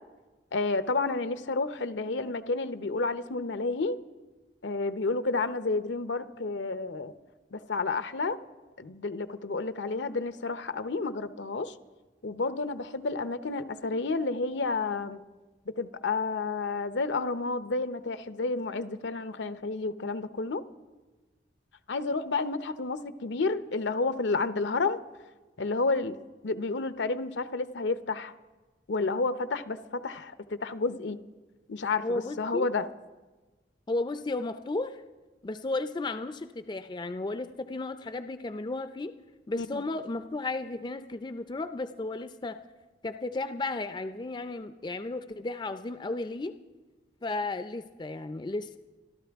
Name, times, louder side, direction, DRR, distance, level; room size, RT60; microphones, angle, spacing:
voice 1, 0.5-4.0 4.6-7.1 7.5-8.4 8.8-11.8 12.2-15.2 15.7-20.6 21.9-25.0 25.6-26.2 26.4-28.3 28.9-31.2 31.7-32.9 39.5-39.8, left 3 dB, 80° left, 12 dB, 0.7 m, -30 dB
voice 2, 32.0-32.7 33.9-35.0 35.4-39.2 39.5-42.6 43.0-46.6 47.2-48.8, left 2 dB, 25° left, 10 dB, 0.4 m, -34 dB
26.0 x 12.5 x 3.5 m, 1.2 s
head